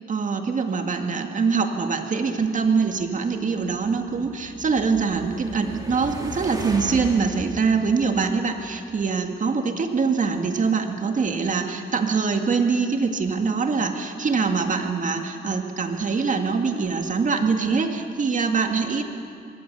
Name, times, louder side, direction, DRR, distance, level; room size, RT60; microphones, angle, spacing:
voice 1, 0.1-19.0, right 5 dB, 40° right, 5 dB, 2.0 m, -24 dB
sound 1, 3.5-8.9, right 2 dB, 20° right, 2.9 m, -38 dB
22.0 x 17.0 x 6.9 m, 2.5 s
cardioid pair, 90°, 20 cm